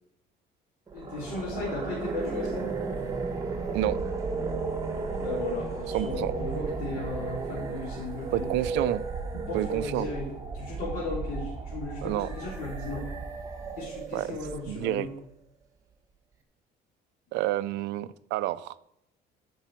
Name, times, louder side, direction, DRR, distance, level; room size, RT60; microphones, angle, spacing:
voice 1, 0.9-2.8 5.2-8.7 9.3-10.3 10.5-13.1 13.8-15.1, left 3 dB, 55° left, 3.3 m, -35 dB
sound 1, 0.9-15.0, right 4 dB, 15° right, 1.4 m, -34 dB
voice 2, 5.9-6.3 8.3-9.0 9.5-10.1 12.0-12.3 14.1-14.3 14.7-15.1 17.3-18.8, right 15 dB, 85° right, 0.5 m, -29 dB
11.5 x 5.5 x 7.5 m
cardioid pair, 180°, 18 cm